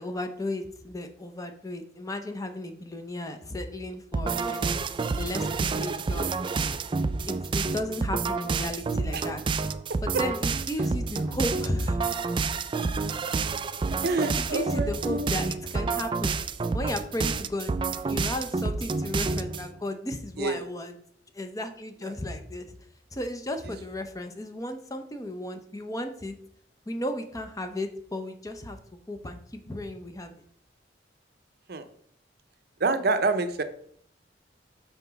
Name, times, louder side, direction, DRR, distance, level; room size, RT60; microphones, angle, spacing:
voice 1, 0.0-4.7 5.1-6.3 7.2-9.4 10.0-12.0 14.4-16.4 16.7-17.7 18.0-20.9 21.3-22.7 23.1-26.3 26.9-28.8 29.1-30.3, left 1 dB, 20° left, 6 dB, 0.7 m, -34 dB
sound 1, 4.1-19.7, right 4 dB, 25° right, 0.3 m, -29 dB
voice 2, 14.0-15.3 20.4-20.7 22.0-22.1 31.7-31.8 32.8-33.6, right 3 dB, 60° right, 9 dB, 0.6 m, -27 dB
5.8 x 4.1 x 5.7 m, 0.63 s
head